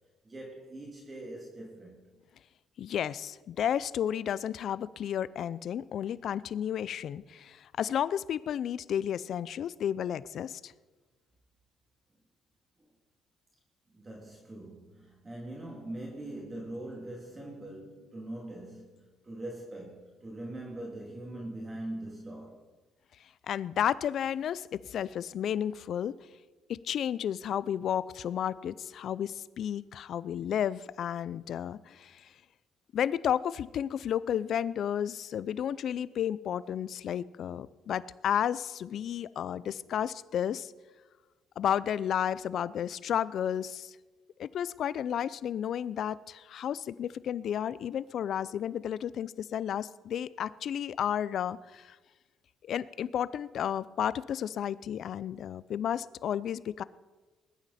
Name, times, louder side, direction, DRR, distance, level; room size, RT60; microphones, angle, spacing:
voice 1, 0.2-2.0 12.8-12.9 13.9-22.6, right 1 dB, 25° right, -2 dB, 2.7 m, -42 dB
voice 2, 2.8-10.7 23.5-26.2 26.8-32.3 32.9-40.7 41.6-44.0 44.4-52.0 52.6-56.8, left 9 dB, 65° left, 19 dB, 0.5 m, -32 dB
20.5 x 12.0 x 4.3 m, 1.3 s
cardioid pair, 100°, 0 cm